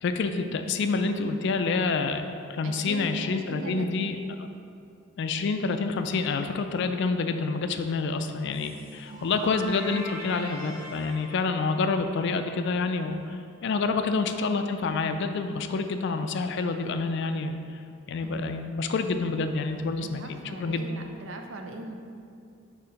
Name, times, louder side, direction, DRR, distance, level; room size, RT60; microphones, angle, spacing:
voice 1, 0.0-4.2 5.2-17.6 18.1-20.9, left 4 dB, 60° left, 8 dB, 0.4 m, -28 dB
voice 2, 2.6-4.1 9.1-9.4 13.8-13.9 18.2-18.5 20.0-22.0, right 2 dB, 65° right, 3 dB, 0.5 m, -40 dB
sound 1, 8.5-13.3, right 1 dB, 45° right, 1.3 m, -42 dB
6.8 x 2.9 x 5.1 m, 2.4 s
head